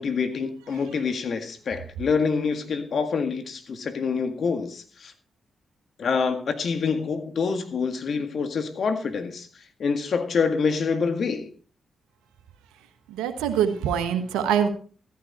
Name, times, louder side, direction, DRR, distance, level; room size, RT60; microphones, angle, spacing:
voice 1, 0.0-5.1 6.0-9.5 9.8-11.5, left 5 dB, 65° left, 8 dB, 1.9 m, -26 dB
voice 2, 13.1-14.7, right 8 dB, 90° right, 7 dB, 1.3 m, -24 dB
14.0 x 10.0 x 4.2 m, 0.40 s
supercardioid pair, 45°, 0 cm